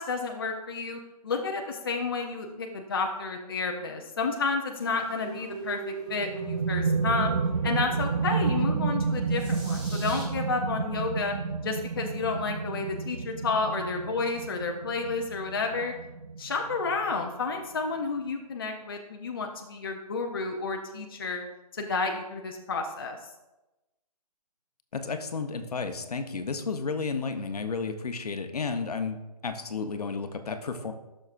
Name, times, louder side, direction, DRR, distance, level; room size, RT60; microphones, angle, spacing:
voice 1, 0.0-7.3 7.6-11.3 11.6-15.9 16.4-21.4 21.7-23.2, left 4 dB, 35° left, 2 dB, 0.6 m, -31 dB
sound 1, 4.8-10.3, right 5 dB, 15° right, 1.0 m, -42 dB
sound 2, 6.1-17.5, right 4 dB, 60° right, 0.5 m, -30 dB
voice 2, 24.9-29.2 29.4-30.9, left 4 dB, 70° left, 7 dB, 0.9 m, -32 dB
12.5 x 6.4 x 2.5 m, 1.0 s
hypercardioid pair, 175°, 21 cm